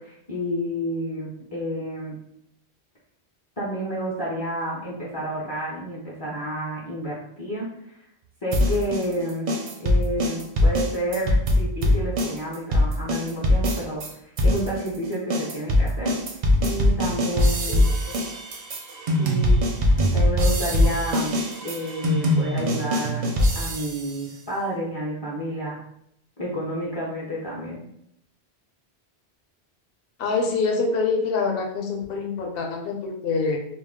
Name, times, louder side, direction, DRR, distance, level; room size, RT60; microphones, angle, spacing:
voice 1, 0.0-2.2 3.6-7.6 8.4-9.5 9.8-16.1 16.6-17.9 19.2-19.6 20.1-21.4 21.6-23.3 23.5-25.8 26.4-27.8, equal, 30° left, -6 dB, 0.5 m, -30 dB
sound 1, 8.5-14.1 14.4-24.1, left 1 dB, 55° right, 0.5 m, -22 dB
voice 2, 17.7-18.1 30.2-33.6, left 4 dB, 65° left, 2 dB, 0.7 m, -25 dB
2.3 x 2.0 x 3.4 m, 0.74 s
omnidirectional pair, 1.1 m